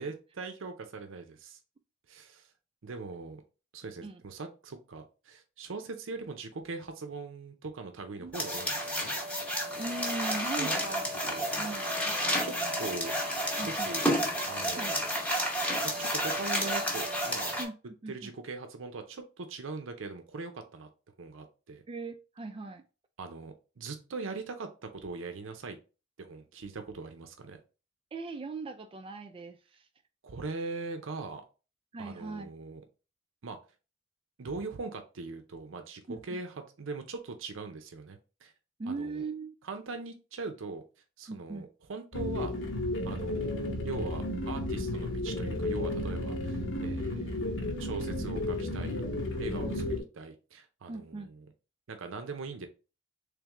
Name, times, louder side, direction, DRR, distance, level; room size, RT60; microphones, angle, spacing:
voice 1, 0.0-1.6 2.1-2.5 2.8-3.4 3.7-9.1 10.6-10.7 11.3-11.7 12.4-13.1 13.5-14.1 14.5-15.1 16.0-17.6 18.1-20.9 21.2-21.8 23.2-25.8 26.2-27.6 30.2-31.4 32.0-32.8 33.4-33.6 34.4-38.5 38.9-39.2 39.6-40.8 41.2-42.5 43.0-49.0 49.4-51.5 51.9-52.7, right 3 dB, 90° right, 7 dB, 0.6 m, -41 dB
sound 1, 8.3-17.6, equal, 5° left, 0.8 m, -31 dB
voice 2, 9.8-11.1 11.5-12.9 13.6-14.0 14.7-14.9 17.6-18.3 21.9-22.8 28.1-29.9 31.9-32.5 36.1-36.4 38.8-39.5 41.3-41.7 49.6-49.8 50.9-51.3, right 3 dB, 30° right, 7 dB, 0.3 m, -39 dB
sound 2, 42.1-50.0, left 1 dB, 70° left, 0.9 m, -33 dB
3.6 x 3.3 x 3.0 m, 0.32 s
head